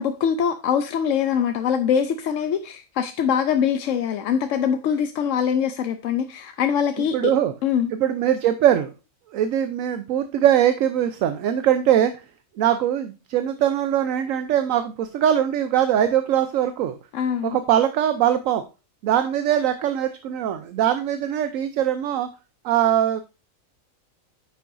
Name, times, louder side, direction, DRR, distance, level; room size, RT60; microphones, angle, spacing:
voice 1, 0.0-7.3 7.6-7.9 17.1-17.6, left 8 dB, 70° left, 0.9 m, -23 dB
voice 2, 7.1-7.5 7.9-8.9 9.3-12.1 12.6-17.0 17.4-18.6 19.0-22.3 22.6-23.2, right 10 dB, 75° right, 1.0 m, -21 dB
9.3 x 6.9 x 2.6 m
omnidirectional pair, 1.4 m